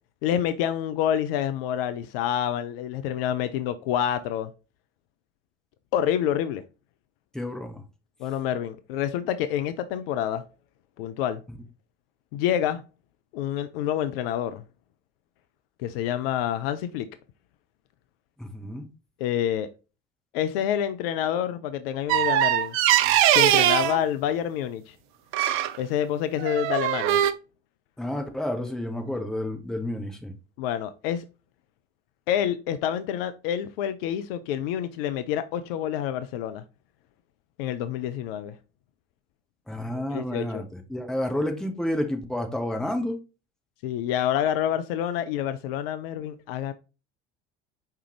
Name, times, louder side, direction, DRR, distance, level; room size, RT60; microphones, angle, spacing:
voice 1, 0.2-4.5 5.9-6.6 8.2-10.4 11.0-11.4 12.3-12.8 13.3-14.6 15.8-17.1 19.2-19.7 20.3-22.8 23.3-25.0 25.8-27.2 30.6-31.2 32.3-36.6 37.6-38.6 40.1-40.6 43.8-46.7, left 10 dB, 55° left, 0.4 m, -27 dB
voice 2, 7.3-7.8 18.4-18.9 28.0-30.3 39.7-43.2, left 1 dB, ahead, 0.7 m, -30 dB
sound 1, 22.1-24.0 25.3-25.8 26.4-27.3, right 12 dB, 40° right, 0.4 m, -21 dB
4.8 x 3.3 x 2.9 m
figure-of-eight pair, 65°, 36 cm